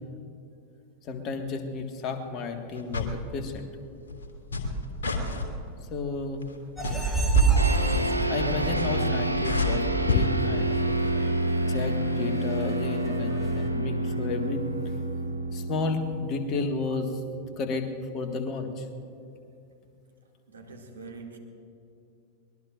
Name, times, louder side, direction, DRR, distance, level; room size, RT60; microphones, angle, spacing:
voice 1, 1.0-3.7 5.9-6.4 8.3-10.7 11.7-14.7 15.5-17.2 17.6-18.9, left 3 dB, 35° left, 1.7 m, -32 dB
sound 1, 2.8-3.2 4.1-5.5 6.4-6.6 6.8-7.5 8.6-9.1 9.3-10.2 11.0-11.1, left 4 dB, 65° left, 2.1 m, -29 dB
sound 2, 6.8-13.7, right 4 dB, ahead, 2.6 m, -30 dB
sound 3, 7.6-17.2, right 1 dB, 90° left, 1.6 m, -28 dB
voice 2, 20.5-21.4, right 4 dB, 75° right, 2.4 m, -43 dB
23.5 x 21.0 x 2.6 m
figure-of-eight pair, 90°, 0 cm